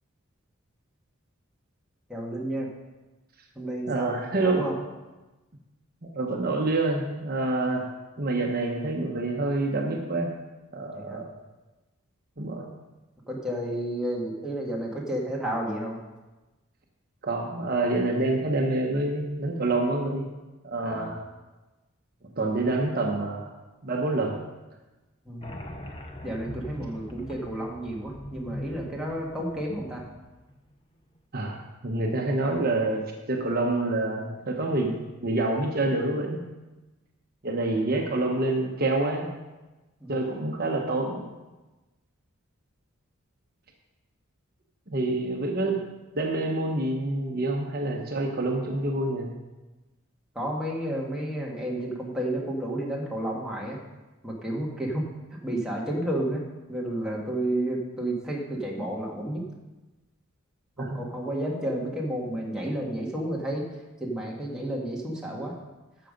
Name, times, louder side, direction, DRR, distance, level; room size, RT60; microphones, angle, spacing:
voice 1, 2.1-2.7 3.6-4.8 10.9-11.2 13.3-16.0 20.8-21.1 25.3-25.6 26.2-30.0 40.0-40.2 50.3-53.8 54.2-56.4 56.7-59.4 60.8-63.7 64.0-65.6, right 1 dB, 5° right, -4 dB, 1.8 m, -31 dB
voice 2, 3.9-4.6 6.0-7.9 8.2-10.3 10.7-11.3 12.4-12.7 17.2-20.3 20.6-21.2 22.4-23.5 23.8-24.4 31.3-36.4 37.4-39.3 40.1-41.2 44.9-45.8 46.1-49.3 60.8-61.0, right 2 dB, 45° right, 1 dB, 1.1 m, -27 dB
sound 1, 25.4-30.6, left 1 dB, 25° left, 0.9 m, -41 dB
12.0 x 6.9 x 5.2 m, 1.1 s
head